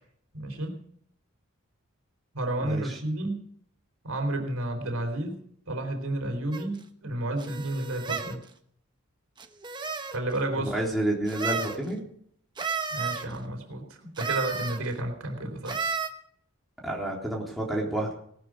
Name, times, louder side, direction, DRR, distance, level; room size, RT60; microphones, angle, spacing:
voice 1, 0.3-0.8 2.3-3.5 4.0-8.4 10.1-10.8 12.9-15.8, right 1 dB, 75° right, 4 dB, 3.9 m, -31 dB
voice 2, 2.6-3.0 10.6-12.0 16.8-18.1, right 1 dB, ahead, -1 dB, 3.8 m, -29 dB
sound 1, 6.5-6.7 7.4-8.4 9.4-10.2 11.3-11.8 12.6-13.3 14.2-14.8 15.7-16.1, right 5 dB, 20° right, 1.1 m, -32 dB
18.5 x 13.0 x 5.0 m, 0.65 s
head